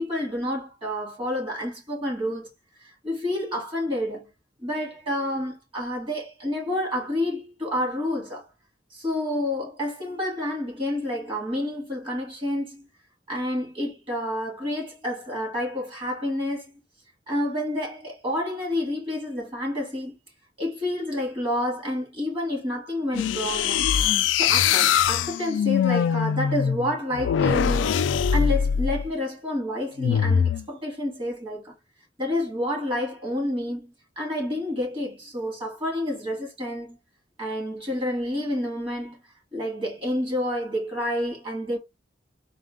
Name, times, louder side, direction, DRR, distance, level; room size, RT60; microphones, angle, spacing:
voice 1, 0.0-2.5 2.8-4.3 4.6-8.5 8.9-12.9 13.3-16.8 17.3-20.2 20.6-23.9 24.3-31.7 32.2-37.0 37.4-39.2 39.5-41.8, left 1 dB, 30° right, 2.2 m, -29 dB
sound 1, 23.1-29.1 30.0-30.6, left 8 dB, 75° left, 0.3 m, -22 dB
4.1 x 2.3 x 3.7 m
head